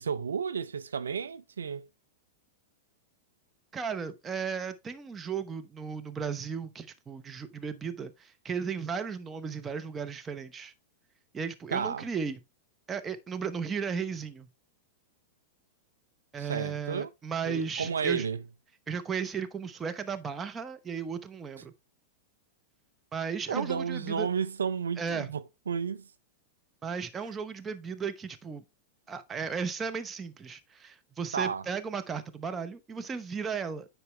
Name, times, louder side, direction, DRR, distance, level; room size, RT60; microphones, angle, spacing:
voice 1, 0.0-1.9 11.7-12.0 16.4-17.1 17.4-18.4 23.5-26.1 31.3-31.6, right 6 dB, 80° right, 0.4 m, -32 dB
voice 2, 3.7-10.7 11.3-12.4 12.9-14.5 16.3-18.2 18.9-21.7 23.1-24.3 25.0-25.3 26.8-28.6 29.1-33.9, right 6 dB, 20° right, 1.0 m, -35 dB
9.9 x 4.6 x 3.2 m
hypercardioid pair, 100°, 0 cm